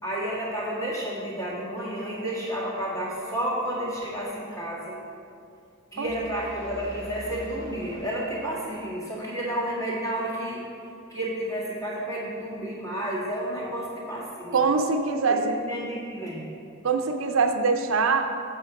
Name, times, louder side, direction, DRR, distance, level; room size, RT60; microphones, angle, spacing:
voice 1, 0.0-5.0 5.9-10.6 11.1-14.6 15.3-16.5, right 1 dB, 15° left, -7 dB, 1.8 m, -31 dB
sound 1, 6.0-8.9, right 1 dB, 35° right, 1.3 m, -44 dB
voice 2, 14.5-15.6 16.8-18.2, right 4 dB, 70° right, 5 dB, 0.5 m, -23 dB
7.7 x 4.4 x 4.9 m, 2.5 s
head